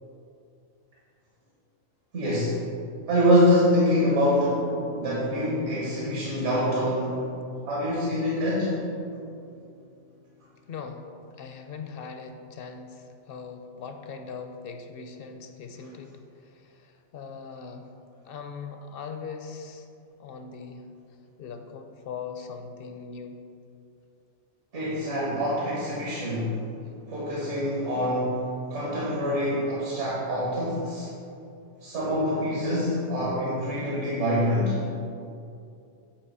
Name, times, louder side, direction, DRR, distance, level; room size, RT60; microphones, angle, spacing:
voice 1, 2.1-2.6 3.1-4.6 5.0-7.2 7.7-8.8 24.7-26.6 26.9-31.1 31.8-34.8, equal, 75° right, -6 dB, 1.6 m, -25 dB
sound 1, 3.6-12.3, left 2 dB, 80° left, 1.3 m, -46 dB
voice 2, 10.7-11.1 11.4-16.1 16.4-17.9 18.2-19.9 20.2-20.9 21.4-23.5, left 5 dB, 60° left, 5 dB, 0.6 m, -40 dB
8.6 x 2.9 x 5.4 m, 2.5 s
omnidirectional pair, 1.2 m